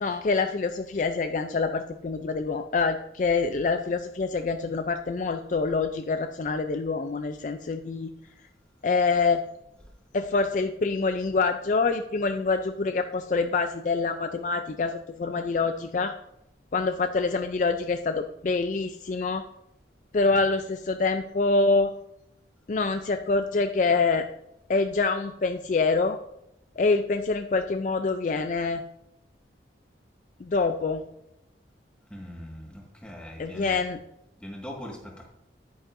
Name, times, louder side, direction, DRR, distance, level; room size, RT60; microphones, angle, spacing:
voice 1, 0.0-8.1 8.8-9.4 10.1-16.1 16.7-19.4 20.1-21.9 22.7-24.3 24.7-26.2 26.8-28.8 30.4-31.0 33.4-34.0, left 4 dB, 45° left, 7 dB, 0.4 m, -26 dB
voice 2, 32.1-33.8 34.3-35.3, left 1 dB, 5° left, -2 dB, 1.6 m, -41 dB
10.5 x 8.9 x 2.6 m, 0.82 s
head